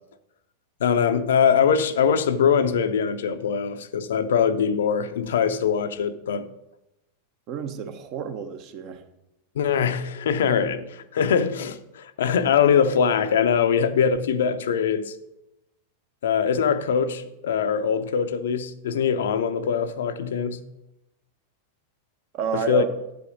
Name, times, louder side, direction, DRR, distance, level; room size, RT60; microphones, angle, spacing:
voice 1, 0.8-6.5 9.6-15.1 16.2-20.6 22.5-22.8, left 7 dB, 60° left, 0.6 m, -22 dB
voice 2, 7.5-9.0 22.3-22.9, right 7 dB, 40° right, 0.9 m, -30 dB
9.8 x 5.2 x 6.2 m
figure-of-eight pair, 90°, 0 cm